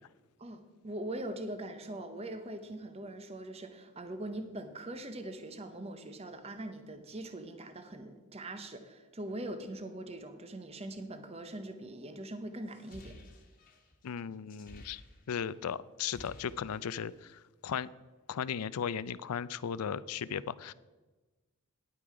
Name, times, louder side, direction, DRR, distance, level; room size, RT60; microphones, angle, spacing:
voice 1, 0.4-13.2, right 1 dB, 25° right, 8 dB, 0.8 m, -42 dB
sound 1, 12.6-15.6 15.9-17.2, left 1 dB, 40° left, 1.4 m, -54 dB
voice 2, 14.0-15.0 15.3-17.9 18.3-20.7, left 7 dB, 85° left, 18 dB, 0.4 m, -36 dB
10.5 x 8.7 x 4.8 m, 1.2 s
head